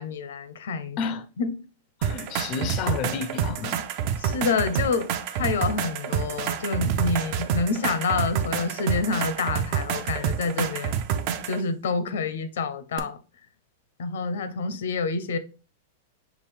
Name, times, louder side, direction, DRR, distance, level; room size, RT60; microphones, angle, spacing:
voice 1, 0.0-1.0 1.4-1.5 4.2-5.1 5.3-11.0 11.5-13.2 14.0-15.4, left 4 dB, 85° left, 0.6 m, -27 dB
voice 2, 2.0-3.9, left 6 dB, 35° left, 0.4 m, -31 dB
sound 1, 2.0-11.6 13.0-13.1, right 8 dB, 40° right, 0.5 m, -28 dB
5.7 x 2.4 x 3.5 m
supercardioid pair, 155°, 0 cm